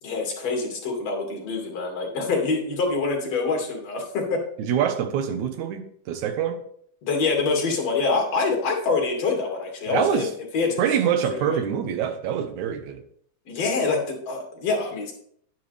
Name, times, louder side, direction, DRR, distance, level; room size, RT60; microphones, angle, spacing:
voice 1, 0.0-4.4 7.0-10.8 11.4-11.6 13.5-15.1, left 4 dB, 60° left, 3.4 m, -25 dB
voice 2, 4.6-6.6 9.9-10.3 10.8-13.0, right 8 dB, 80° right, 2.4 m, -25 dB
10.5 x 10.0 x 3.4 m
omnidirectional pair, 3.4 m